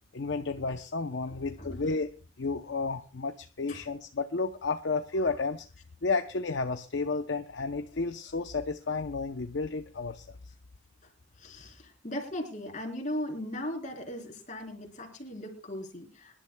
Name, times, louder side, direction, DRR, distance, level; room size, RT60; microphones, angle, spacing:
voice 1, 0.1-5.7 6.0-10.5, left 3 dB, 65° left, 7 dB, 0.6 m, -32 dB
voice 2, 11.4-16.4, left 1 dB, 40° left, 2 dB, 3.8 m, -38 dB
25.5 x 11.5 x 2.2 m, 0.32 s
head